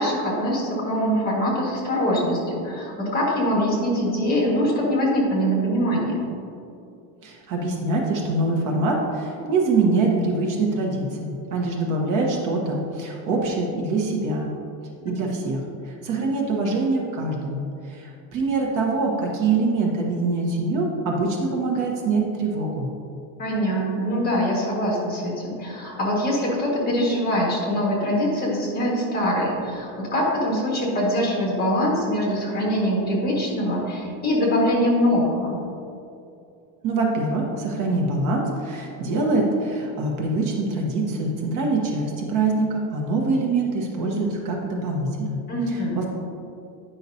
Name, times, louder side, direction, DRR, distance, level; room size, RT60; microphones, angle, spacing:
voice 1, 0.0-6.2 15.1-15.2 23.4-35.6 45.5-46.0, equal, 25° left, -3 dB, 1.7 m, -23 dB
voice 2, 7.2-14.5 15.0-22.9 36.8-45.4 46.0-46.1, right 3 dB, 50° right, 0 dB, 1.1 m, -24 dB
9.8 x 5.7 x 2.7 m, 2.6 s
cardioid pair, 160°, 39 cm